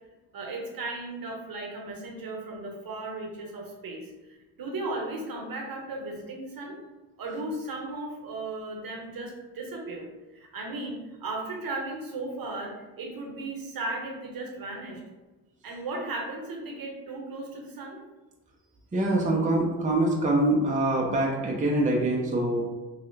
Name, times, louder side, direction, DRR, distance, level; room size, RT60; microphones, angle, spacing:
voice 1, 0.3-6.8 7.2-15.0 15.6-18.0, right 2 dB, 50° right, 0 dB, 1.0 m, -36 dB
voice 2, 18.9-22.6, right 1 dB, 15° right, -2 dB, 0.7 m, -24 dB
3.1 x 2.3 x 3.2 m, 1.1 s
supercardioid pair, 55°, 45 cm